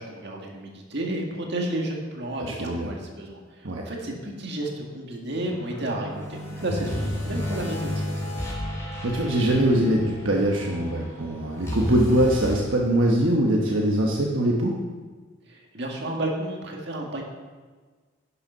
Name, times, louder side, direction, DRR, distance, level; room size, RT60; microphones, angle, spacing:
voice 1, 0.0-8.1 15.5-17.2, right 1 dB, 55° right, 0 dB, 1.8 m, -32 dB
voice 2, 2.4-2.9 3.6-3.8 9.0-14.8, right 1 dB, 75° right, -1 dB, 1.2 m, -22 dB
sound 1, 5.4-12.5, left 1 dB, 15° left, 3.3 m, -32 dB
11.0 x 6.9 x 5.6 m, 1.4 s
head